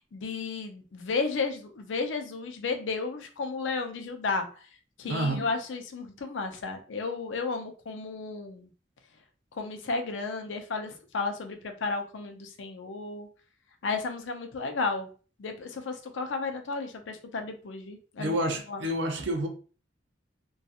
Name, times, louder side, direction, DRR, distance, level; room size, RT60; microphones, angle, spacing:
voice 1, 0.1-4.5 5.0-8.7 9.6-13.3 13.8-15.1 15.4-18.9, left 4 dB, 85° left, 0.5 m, -33 dB
voice 2, 5.0-5.5 18.2-19.5, right 1 dB, 70° right, 0.5 m, -29 dB
2.7 x 2.3 x 2.3 m
head